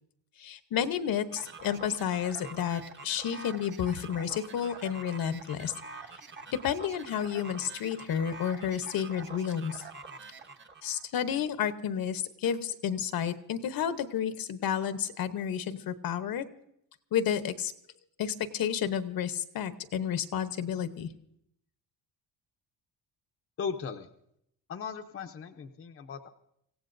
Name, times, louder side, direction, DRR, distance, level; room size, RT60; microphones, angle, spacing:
voice 1, 0.4-6.1 6.5-9.8 10.8-16.5 17.1-17.7 18.2-21.1, left 8 dB, 65° left, 11 dB, 0.9 m, -31 dB
sound 1, 1.3-11.0, right 4 dB, 30° right, 1.0 m, -46 dB
voice 2, 23.6-24.1 24.7-26.3, left 6 dB, 35° left, 5 dB, 0.7 m, -37 dB
25.5 x 16.0 x 2.6 m, 0.74 s
cardioid pair, 175°, 39 cm